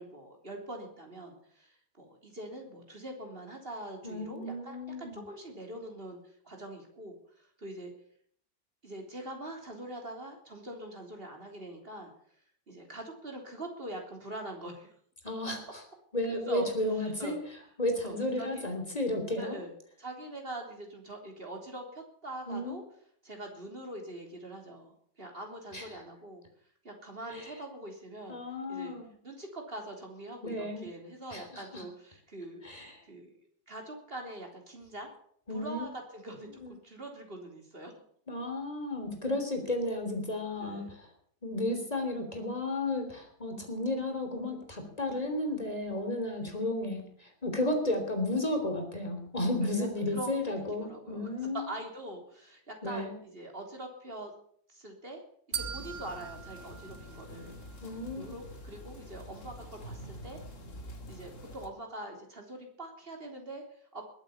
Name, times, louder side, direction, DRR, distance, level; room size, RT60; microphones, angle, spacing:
voice 1, 0.0-6.2 6.4-7.9 8.8-12.1 12.7-14.9 16.3-16.7 16.9-17.4 18.0-18.6 19.4-19.7 20.0-22.8 23.2-26.4 26.8-28.4 28.7-29.0 29.2-33.3 33.7-35.1 35.5-37.9 40.5-40.9 46.4-46.6 49.6-50.3 50.8-51.3 51.5-54.3 54.7-55.2 55.5-57.5 58.2-60.4 61.1-64.0, right 1 dB, 35° right, 2 dB, 3.7 m, -43 dB
voice 2, 4.0-5.2 15.2-15.8 16.1-17.3 17.8-19.6 22.5-22.7 25.7-25.8 27.3-27.5 28.3-29.1 30.4-30.9 31.3-31.8 32.6-33.0 35.5-35.9 36.6-36.7 38.3-40.8 41.4-51.6 52.8-53.2 57.8-58.3, left 1 dB, 25° left, 4 dB, 3.4 m, -33 dB
sound 1, 55.5-61.7, equal, 50° left, 2.4 m, -46 dB
sound 2, 55.5-57.8, right 8 dB, 55° right, 1.4 m, -41 dB
21.0 x 8.8 x 7.1 m, 0.62 s
omnidirectional pair, 1.7 m